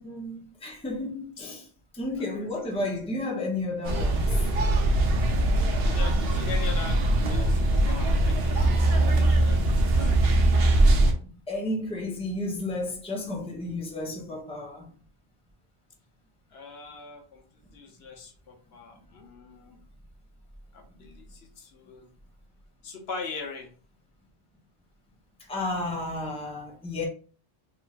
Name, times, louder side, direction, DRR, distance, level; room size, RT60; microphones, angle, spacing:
voice 1, 0.0-4.4 10.1-10.2 11.2-14.9 18.9-19.0 25.5-27.1, left 2 dB, 5° left, 0.6 m, -32 dB
sound 1, 3.8-11.1, right 1 dB, 65° right, 0.9 m, -22 dB
voice 2, 5.8-10.6 16.5-17.4 17.7-19.8 20.7-22.1 22.8-23.7, left 4 dB, 70° left, 0.9 m, -41 dB
3.4 x 3.0 x 2.4 m
omnidirectional pair, 1.1 m